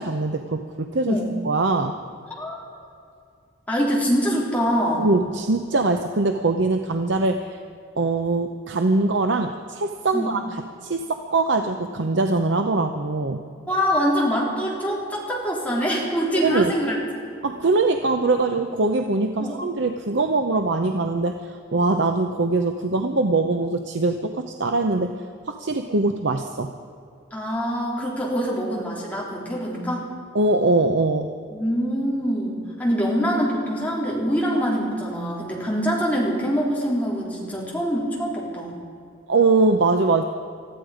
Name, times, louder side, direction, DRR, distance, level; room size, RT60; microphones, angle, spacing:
voice 1, 0.0-1.2 1.4-2.0 5.0-7.6 8.0-13.4 16.4-16.7 17.4-26.7 30.3-31.3 39.3-40.2, right 3 dB, 65° right, 6 dB, 0.8 m, -22 dB
voice 2, 3.7-5.1 10.1-10.3 13.7-17.0 19.4-19.6 27.3-30.1 31.5-38.8, equal, 10° left, -5 dB, 3.6 m, -24 dB
20.5 x 14.0 x 5.1 m, 2.4 s
head